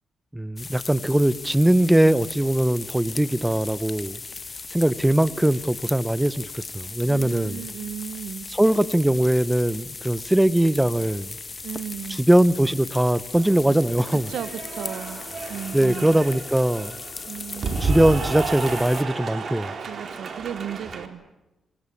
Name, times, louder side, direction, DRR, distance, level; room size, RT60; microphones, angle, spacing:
voice 1, 0.3-4.2 4.7-7.6 8.5-11.3 12.2-14.3 15.7-16.9 17.8-19.7, right 1 dB, 10° right, 17 dB, 0.9 m, -21 dB
sound 1, 0.6-19.0, left 4 dB, 35° left, 1.5 m, -38 dB
voice 2, 7.1-8.5 11.6-12.2 13.7-13.8 14.1-15.2 15.5-16.2 17.3-17.8 19.9-21.2, right 9 dB, 80° right, 15 dB, 1.3 m, -35 dB
Cheering / Applause, 13.3-21.1, right 4 dB, 55° right, 3.9 m, -32 dB
25.5 x 24.0 x 8.6 m, 1.0 s
cardioid pair, 75°, 0 cm